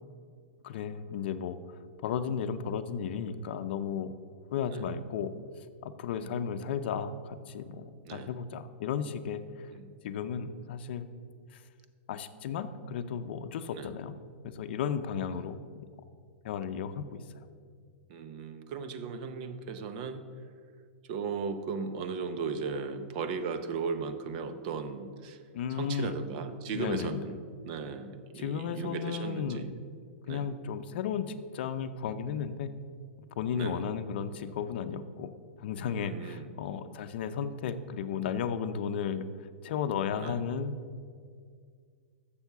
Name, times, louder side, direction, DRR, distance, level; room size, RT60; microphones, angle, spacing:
voice 1, 0.6-4.1 4.5-5.3 5.8-9.7 10.0-11.1 11.5-11.6 12.1-14.1 14.4-15.8 16.4-17.2 25.5-26.2 26.7-27.2 28.4-29.7 30.3-32.7 33.4-35.3 35.6-39.3 39.6-40.7, left 7 dB, 60° left, 10 dB, 0.6 m, -34 dB
voice 2, 18.1-20.2 21.1-25.4 25.7-27.4 27.6-29.7 30.3-30.5 33.5-33.8 36.0-36.5 40.1-40.4, right 5 dB, 45° right, 9 dB, 0.7 m, -36 dB
7.1 x 6.9 x 6.8 m, 2.1 s
hypercardioid pair, 150°, 7 cm